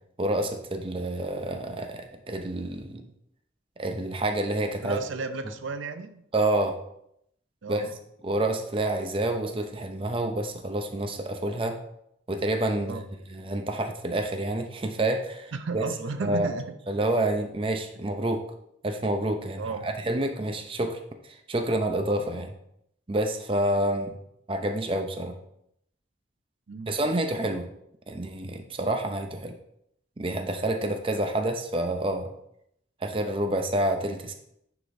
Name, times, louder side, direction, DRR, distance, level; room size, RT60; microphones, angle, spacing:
voice 1, 0.2-3.0 3.8-5.0 6.3-6.7 7.7-7.9 8.2-11.8 12.3-13.0 13.3-15.8 16.2-16.5 16.9-18.4 18.8-21.0 21.3-22.5 23.1-24.1 24.5-25.3 26.9-27.7 28.1-29.5 30.2-32.3 33.0-34.3, right 1 dB, 30° right, 6 dB, 0.5 m, -28 dB
voice 2, 4.8-6.2 7.6-7.9 12.9-13.0 15.5-16.7 19.6-19.9 26.7-26.9, right 4 dB, 85° right, 9 dB, 0.5 m, -33 dB
9.7 x 4.9 x 2.6 m, 0.76 s
head